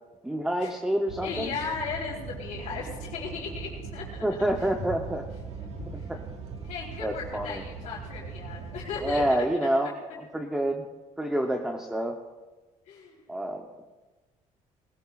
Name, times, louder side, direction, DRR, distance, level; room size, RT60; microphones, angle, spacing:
voice 1, 0.2-1.5 4.2-5.2 5.9-6.2 7.0-7.6 9.0-10.9 11.2-12.2 13.3-13.6, right 1 dB, 5° right, 2 dB, 0.7 m, -28 dB
sound 1, 1.1-9.3, right 5 dB, 55° right, 1.5 m, -40 dB
voice 2, 1.2-4.0 6.6-9.4 12.9-13.2, left 5 dB, 70° left, -4 dB, 3.6 m, -36 dB
19.5 x 19.5 x 2.4 m, 1.2 s
cardioid pair, 170°, 13 cm